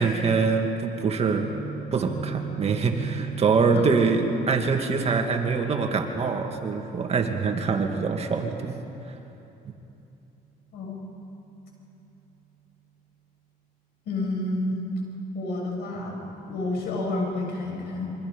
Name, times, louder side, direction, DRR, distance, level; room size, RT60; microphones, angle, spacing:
voice 1, 0.0-1.5 1.9-8.8 9.7-9.8, right 4 dB, 40° right, 3 dB, 2.2 m, -24 dB
Guitar, 1.2-9.1, right 8 dB, 35° left, 5.9 m, -40 dB
voice 2, 14.1-14.8 15.3-18.1, left 2 dB, 75° left, 0 dB, 6.9 m, -30 dB
27.5 x 24.0 x 5.4 m, 2.9 s
cardioid pair, 110°, 17 cm